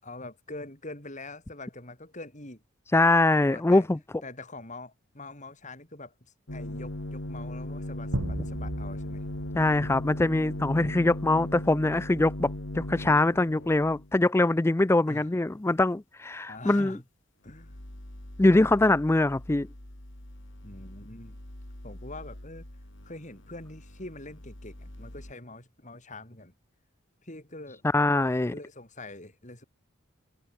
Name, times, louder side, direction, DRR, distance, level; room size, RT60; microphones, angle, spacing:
voice 1, 0.0-2.6 3.5-3.9 4.2-9.2 15.1-15.3 16.5-17.0 17.4-17.8 20.6-21.4 21.8-22.7 23.0-26.5 27.2-27.8 28.5-29.6, left 2 dB, 35° left, 7.6 m, -44 dB
voice 2, 2.9-4.0 9.5-17.0 18.4-19.7 27.9-28.5, left 2 dB, 10° left, 0.4 m, -23 dB
sound 1, 6.5-14.1 17.5-25.3, left 1 dB, 65° left, 3.1 m, -39 dB
sound 2, 8.1-11.0, right 1 dB, 80° right, 2.7 m, -37 dB
head